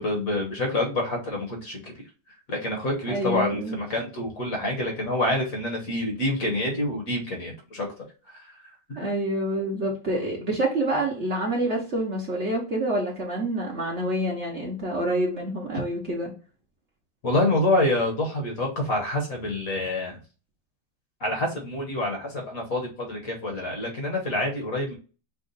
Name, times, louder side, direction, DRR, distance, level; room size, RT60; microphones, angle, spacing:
voice 1, 0.0-2.1 2.5-7.9 8.3-8.6 8.9-9.1 17.2-20.2 21.2-24.9, left 1 dB, 50° left, 1 dB, 1.5 m, -27 dB
voice 2, 3.1-3.8 9.0-16.3, right 1 dB, 45° right, -2 dB, 1.1 m, -27 dB
5.3 x 2.4 x 3.9 m, 0.35 s
omnidirectional pair, 2.0 m